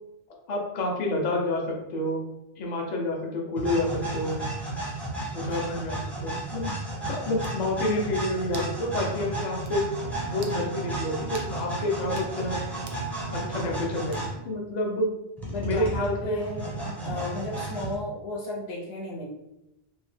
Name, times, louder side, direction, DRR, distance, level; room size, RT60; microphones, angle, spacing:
voice 1, 0.5-2.3 2.6-4.4 5.3-6.0 6.2-6.7 7.1-9.8 10.3-12.6 13.3-15.1 15.6-16.4, left 1 dB, 50° left, 0 dB, 0.7 m, -29 dB
sound 1, 3.6-14.4 15.4-17.9, right 2 dB, ahead, 0.5 m, -33 dB
voice 2, 5.3-5.8 10.5-10.8 13.4-13.8 15.5-19.2, left 2 dB, 75° left, -4 dB, 0.9 m, -36 dB
sound 2, 7.4-7.6 8.5-8.8 9.2-9.3 9.6-9.8 10.3-10.6 11.3-11.5 12.0-12.3 12.9-13.1 14.1-14.5, right 4 dB, 55° right, 0.5 m, -45 dB
Wind instrument woodwind instrument, 9.9-14.4, right 8 dB, 85° right, 0.9 m, -43 dB
2.7 x 2.1 x 3.2 m, 0.90 s
omnidirectional pair, 1.1 m